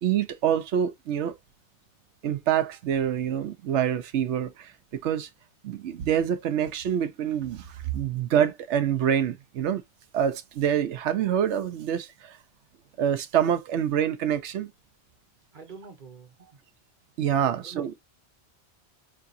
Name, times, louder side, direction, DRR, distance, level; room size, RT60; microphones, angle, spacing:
voice 1, 0.0-1.4 2.2-5.3 5.6-9.8 10.1-12.4 13.0-14.7 17.2-17.9, right 9 dB, 85° right, 1.0 m, -26 dB
voice 2, 15.5-16.6 17.4-18.0, right 5 dB, 45° right, 1.4 m, -47 dB
4.7 x 3.4 x 2.5 m
omnidirectional pair, 1.1 m